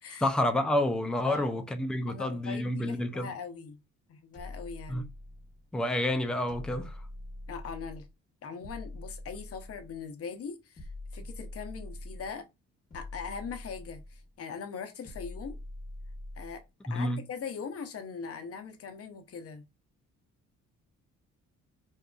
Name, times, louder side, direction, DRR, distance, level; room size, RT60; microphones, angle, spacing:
voice 1, 0.2-3.3 4.9-5.0 5.7-7.0 16.9-17.2, left 1 dB, 5° left, 0.3 m, -29 dB
voice 2, 1.2-1.6 2.1-3.8 4.1-5.1 7.5-8.1 8.4-12.5 12.9-15.6 16.4-16.6 16.9-19.6, left 6 dB, 50° left, 0.7 m, -41 dB
sound 1, 4.3-5.7 6.5-8.1 8.6-10.0 10.8-12.4 12.9-14.3 15.0-16.7, left 1 dB, 25° left, 1.1 m, -44 dB
2.6 x 2.3 x 2.3 m
cardioid pair, 90°, 30 cm